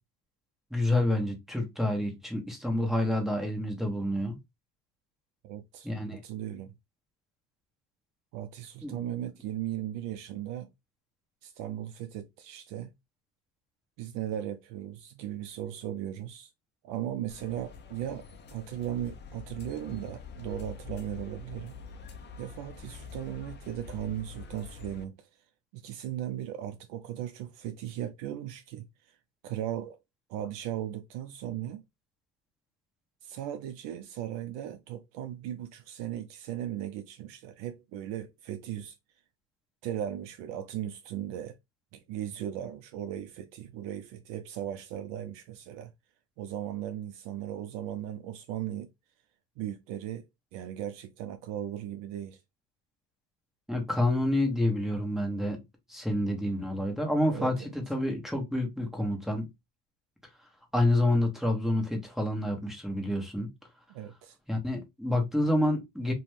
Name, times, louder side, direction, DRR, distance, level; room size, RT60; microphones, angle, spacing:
voice 1, 0.7-4.4 5.8-6.2 8.8-8.9 53.7-55.6 55.9-57.5 57.9-59.5 60.7-63.5 64.5-66.1, left 1 dB, ahead, 0.9 m, -28 dB
voice 2, 5.4-6.7 8.3-10.7 11.4-12.9 14.0-16.5 16.8-25.3 25.7-29.2 29.4-30.0 30.3-31.8 33.2-39.0 39.8-41.6 41.9-45.9 46.4-48.9 49.6-52.4 57.3-57.5 63.9-64.4, right 11 dB, 60° right, 0.5 m, -37 dB
sound 1, 17.3-25.0, left 5 dB, 25° left, 0.4 m, -45 dB
2.5 x 2.2 x 3.1 m
supercardioid pair, 90°, 49 cm